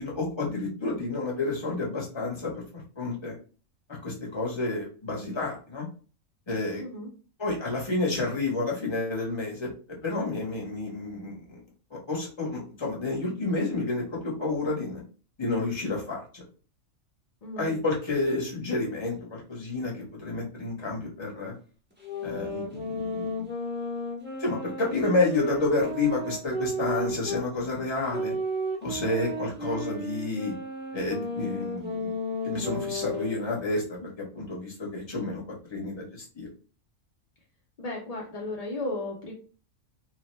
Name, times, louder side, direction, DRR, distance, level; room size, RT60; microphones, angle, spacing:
voice 1, 0.0-2.5 3.0-3.3 4.0-5.9 6.5-6.8 7.4-11.6 12.1-15.0 15.4-16.4 17.6-21.5 22.2-23.5 24.4-28.4 28.8-30.5 30.9-32.2 32.4-35.4 35.7-36.5, left 2 dB, 25° left, -2 dB, 0.7 m, -30 dB
voice 2, 6.8-7.1 17.4-17.7 37.8-39.3, left 2 dB, 60° left, -2 dB, 0.4 m, -34 dB
sound 1, 22.0-27.5 28.1-33.5, equal, 15° right, 0.4 m, -33 dB
2.7 x 2.1 x 3.1 m, 0.38 s
omnidirectional pair, 1.4 m